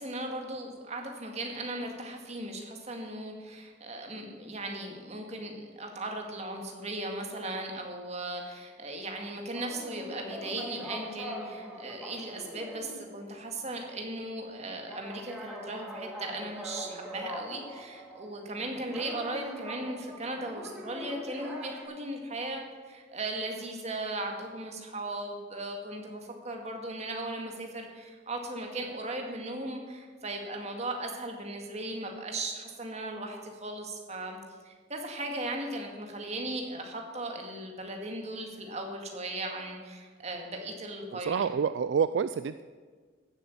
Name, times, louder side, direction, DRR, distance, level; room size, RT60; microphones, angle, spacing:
voice 1, 0.0-34.4 34.6-41.4, right 2 dB, 35° right, 2 dB, 2.0 m, -37 dB
sound 1, 9.5-13.4 13.7-13.8 14.9-18.6 18.9-21.8, equal, 5° right, 2.4 m, -42 dB
voice 2, 41.1-42.6, right 6 dB, 65° right, 14 dB, 0.3 m, -28 dB
15.0 x 7.8 x 7.2 m, 1.5 s
head